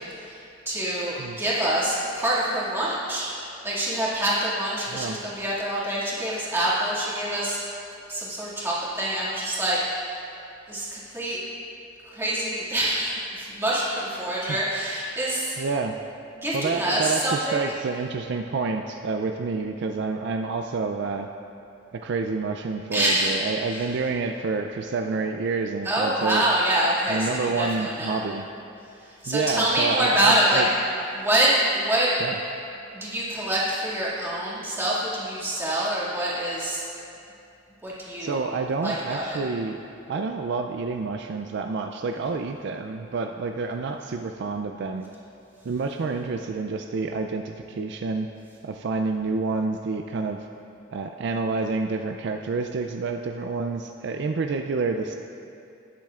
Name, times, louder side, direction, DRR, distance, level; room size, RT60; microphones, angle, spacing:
voice 1, 0.0-7.6 8.1-10.2 10.7-11.4 12.0-15.5 16.3-17.7 22.9-23.4 23.7-23.8 25.8-28.2 29.0-30.6 31.1-32.1 32.9-36.8 37.8-38.4 38.8-39.4, right 1 dB, 10° right, -8 dB, 2.1 m, -26 dB
voice 2, 4.9-5.2 14.5-14.6 15.6-16.0 16.5-21.3 21.9-26.4 27.1-28.5 29.3-30.7 32.2-32.4 38.2-39.8 40.1-45.1 45.6-48.3 48.6-50.4 50.9-55.1, right 4 dB, 60° right, 4 dB, 0.4 m, -28 dB
18.5 x 7.5 x 2.4 m, 2.7 s
head